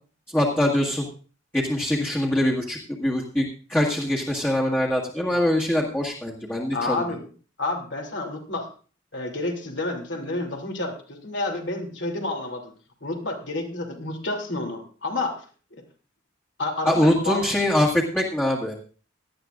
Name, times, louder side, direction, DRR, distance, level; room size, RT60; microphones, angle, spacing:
voice 1, 0.3-1.0 1.5-7.0 16.8-18.7, left 1 dB, 10° left, -4 dB, 1.8 m, -23 dB
voice 2, 6.7-7.2 7.6-8.7 9.1-12.7 13.0-15.4 15.7-15.8 16.6-17.4, left 2 dB, 65° left, 2 dB, 3.0 m, -29 dB
18.0 x 12.5 x 2.5 m, 0.38 s
head